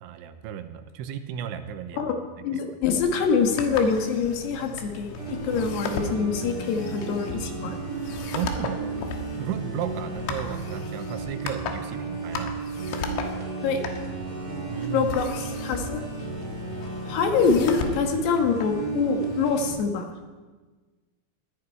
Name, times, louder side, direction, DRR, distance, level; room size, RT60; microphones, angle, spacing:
voice 1, 0.0-2.1 2.5-2.6 8.3-8.9 9.4-12.6 14.7-15.1, right 9 dB, 85° right, 9 dB, 3.2 m, -34 dB
voice 2, 1.9-7.7 13.6-13.8 14.8-16.0 17.1-20.0, left 5 dB, 70° left, 3 dB, 3.2 m, -25 dB
sound 1, 2.8-19.8, left 4 dB, 85° left, 3.9 m, -37 dB
sound 2, 5.2-19.7, right 4 dB, 25° right, 3.8 m, -34 dB
19.5 x 15.0 x 4.5 m, 1.3 s
omnidirectional pair, 5.4 m